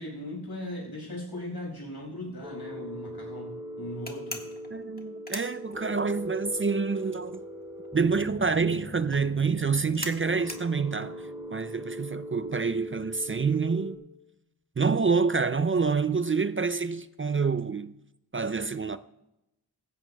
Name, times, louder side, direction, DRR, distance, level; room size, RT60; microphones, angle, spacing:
voice 1, 0.0-4.5, left 1 dB, 75° left, 5.6 m, -38 dB
sound 1, 2.4-13.9, equal, 15° right, 4.1 m, -40 dB
sound 2, 4.1-6.3 6.5-12.4, left 1 dB, 25° left, 1.6 m, -42 dB
voice 2, 4.7-7.4 7.9-14.0 14.8-17.9 18.3-19.0, right 5 dB, 35° right, 0.4 m, -27 dB
17.0 x 15.0 x 2.3 m
wide cardioid pair, 55°, 39 cm